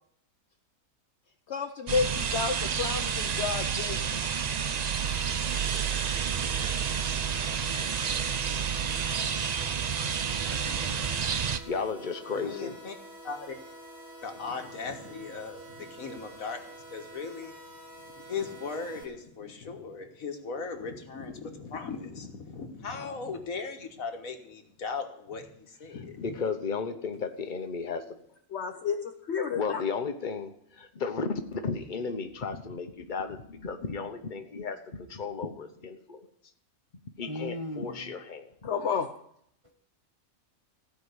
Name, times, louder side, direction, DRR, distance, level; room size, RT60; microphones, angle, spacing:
voice 1, 1.5-4.3 28.5-29.8 38.6-39.1, left 5 dB, 60° left, 0.9 m, -31 dB
sound 1, 1.9-11.6, right 7 dB, 60° right, 0.4 m, -30 dB
sound 2, 5.0-19.0, right 2 dB, 75° right, 4.0 m, -47 dB
voice 2, 10.3-11.3 37.2-38.1 39.6-39.7, equal, 25° right, 0.9 m, -40 dB
voice 3, 11.7-12.8 26.2-28.0 29.5-36.3 37.2-38.5, left 5 dB, 40° left, 1.1 m, -34 dB
voice 4, 12.3-13.0 13.2-13.6 14.2-17.5 18.2-26.4, left 5 dB, 80° left, 1.8 m, -38 dB
15.5 x 5.2 x 8.1 m
omnidirectional pair, 1.4 m